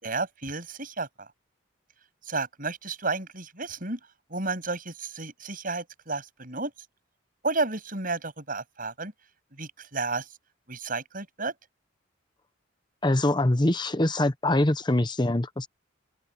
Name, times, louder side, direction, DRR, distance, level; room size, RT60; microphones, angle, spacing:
voice 1, 0.0-1.3 2.2-4.0 4.3-6.7 7.4-9.1 9.6-10.3 10.7-11.5, right 3 dB, 45° right, 8.0 m, -32 dB
voice 2, 13.0-15.7, left 1 dB, 20° left, 0.9 m, -24 dB
head